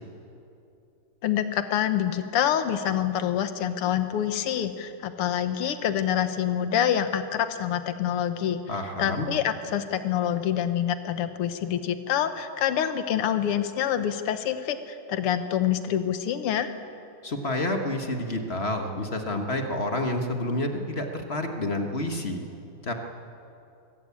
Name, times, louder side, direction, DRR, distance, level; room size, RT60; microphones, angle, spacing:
voice 1, 1.2-8.6 9.0-16.7, left 10 dB, 90° left, 10 dB, 2.0 m, -26 dB
voice 2, 8.7-9.3 17.2-22.4 22.8-22.9, left 1 dB, 35° left, 4 dB, 1.3 m, -29 dB
24.0 x 14.0 x 8.5 m, 2.7 s
omnidirectional pair, 2.4 m